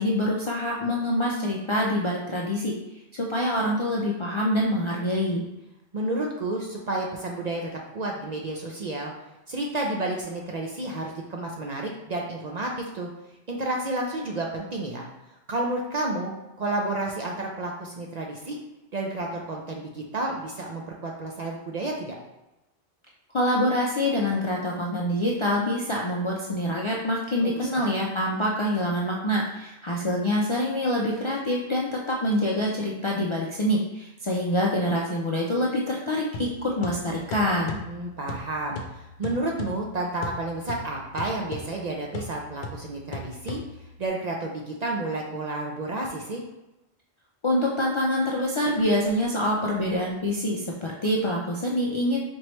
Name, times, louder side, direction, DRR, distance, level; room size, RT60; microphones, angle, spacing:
voice 1, 0.0-2.7 3.1-5.4 23.3-37.8 47.4-52.2, left 1 dB, 45° left, -3 dB, 0.4 m, -25 dB
voice 2, 5.9-9.1 9.5-13.1 13.5-15.1 15.5-18.6 18.9-22.2 27.4-27.9 37.9-43.6 44.0-46.4, right 2 dB, 50° right, -1 dB, 0.5 m, -31 dB
sound 1, 36.3-44.1, left 2 dB, 75° left, 0.9 m, -39 dB
4.3 x 3.1 x 3.0 m, 0.94 s
omnidirectional pair, 1.1 m